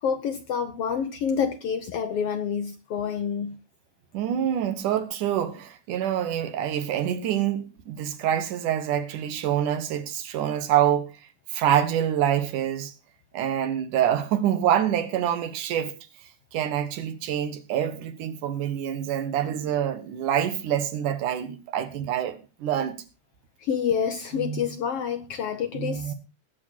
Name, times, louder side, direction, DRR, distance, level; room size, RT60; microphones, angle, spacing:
voice 1, 0.0-3.6 23.6-26.1, left 7 dB, 70° left, 1.4 m, -28 dB
voice 2, 4.1-11.1 11.5-12.9 13.3-15.9 16.5-23.0 24.4-24.6 25.7-26.1, right 10 dB, 85° right, 2.8 m, -26 dB
19.0 x 7.8 x 4.3 m
omnidirectional pair, 3.5 m